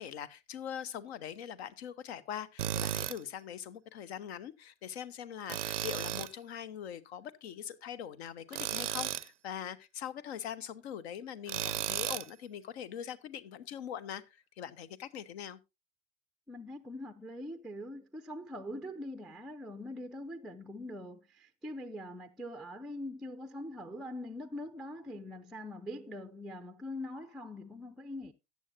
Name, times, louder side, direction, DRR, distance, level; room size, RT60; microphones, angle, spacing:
voice 1, 0.0-15.6, left 9 dB, 60° left, 0.9 m, -42 dB
Tools, 2.6-3.2 5.5-6.3 8.5-9.3 11.5-12.3, right 10 dB, 80° right, 0.5 m, -34 dB
voice 2, 16.5-28.3, left 1 dB, ahead, 0.4 m, -43 dB
13.5 x 9.2 x 2.6 m
figure-of-eight pair, 75°, 36 cm